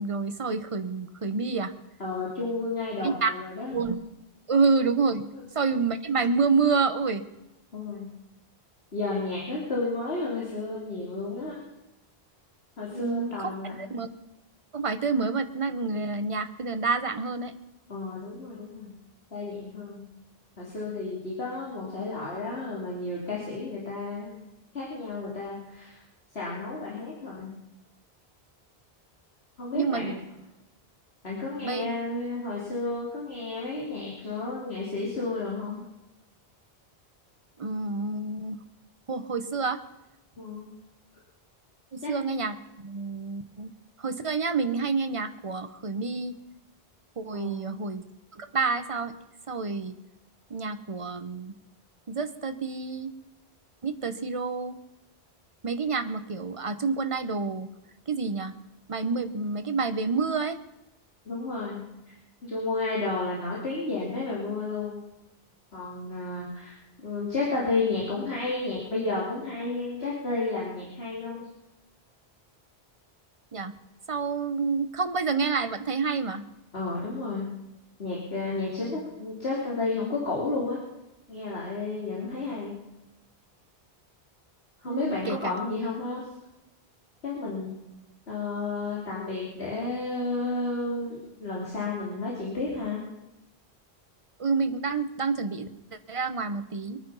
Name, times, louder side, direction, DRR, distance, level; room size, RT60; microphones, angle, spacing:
voice 1, 0.0-1.7 3.0-3.3 3.7-4.0 4.5-5.2 5.5-7.2 12.9-14.1 14.7-17.5 29.7-30.1 31.6-31.9 37.6-38.6 39.1-39.8 41.9-43.7 44.0-46.3 47.2-48.0 48.4-49.1 49.5-49.9 50.5-51.5 52.1-53.1 53.8-54.7 55.6-57.7 58.1-58.5 58.9-60.6 73.5-73.7 74.1-76.4 84.9-85.6 94.4-95.7 96.1-97.0, right 4 dB, 35° right, 10 dB, 0.9 m, -28 dB
voice 2, 2.0-3.8 5.3-5.4 7.7-8.1 8.9-11.6 12.8-13.7 17.9-18.9 19.3-20.0 20.6-24.4 24.7-26.0 26.3-27.5 29.6-30.1 31.2-35.8 40.4-40.7 42.0-42.1 47.3-47.8 61.2-62.1 62.4-65.0 65.7-66.7 67.0-71.5 76.7-77.5 78.0-80.8 81.3-82.7 84.8-86.3 87.2-87.7 88.3-93.0, left 3 dB, 75° left, -5 dB, 3.3 m, -32 dB
24.0 x 9.4 x 5.6 m, 0.96 s
omnidirectional pair, 1.1 m